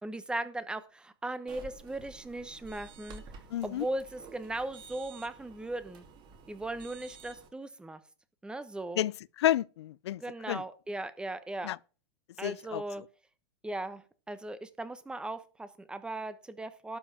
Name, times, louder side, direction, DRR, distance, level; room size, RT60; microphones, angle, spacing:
voice 1, 0.0-3.2 3.6-6.0 6.5-8.0 8.4-9.0 10.2-11.7 12.4-13.0 13.6-14.0 14.3-17.0, right 2 dB, 5° right, 1.0 m, -38 dB
sound 1, 1.5-7.5, right 5 dB, 35° right, 2.8 m, -51 dB
voice 2, 3.5-3.9 9.0-10.2 10.5-10.6 11.6-11.8 12.4-12.8, left 13 dB, 80° left, 0.4 m, -30 dB
12.0 x 5.4 x 7.2 m
hypercardioid pair, 130°, 14 cm